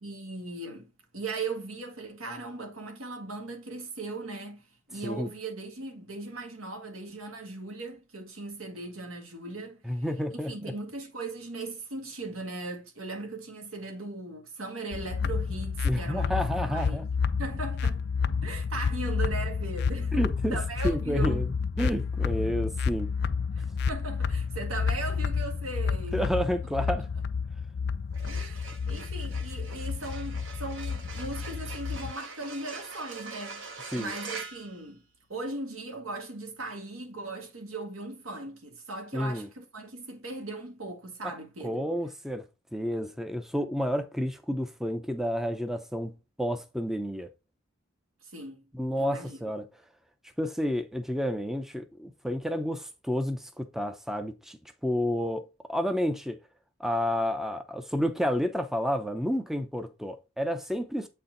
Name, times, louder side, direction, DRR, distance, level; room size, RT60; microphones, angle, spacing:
voice 1, 0.0-10.0 10.3-17.0 17.4-18.1 18.4-20.2 20.5-21.4 23.5-26.3 28.2-35.0 35.3-41.9 48.2-48.6 49.0-49.4, right 3 dB, 85° right, 1.7 m, -38 dB
voice 2, 9.8-10.7 15.8-17.1 20.1-20.6 20.8-23.1 26.1-27.1 33.9-34.1 39.1-39.5 41.2-41.3 41.6-42.4 42.7-47.3 48.7-49.7 50.4-55.4 55.7-56.4 56.8-61.1, equal, ahead, 0.5 m, -30 dB
sound 1, 14.9-32.1, left 5 dB, 50° left, 0.4 m, -30 dB
sound 2, 28.0-35.5, right 4 dB, 65° right, 1.2 m, -44 dB
7.8 x 4.3 x 3.8 m
head